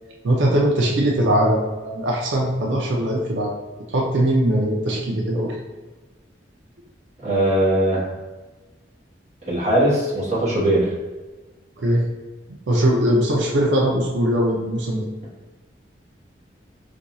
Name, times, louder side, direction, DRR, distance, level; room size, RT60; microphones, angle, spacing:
voice 1, 0.2-3.5 3.9-5.6 11.8-12.1 12.7-15.1, right 1 dB, 90° right, -2 dB, 0.5 m, -20 dB
voice 2, 7.2-8.0 9.5-10.9, right 1 dB, 40° right, -7 dB, 1.0 m, -20 dB
2.6 x 2.3 x 4.0 m, 1.2 s
head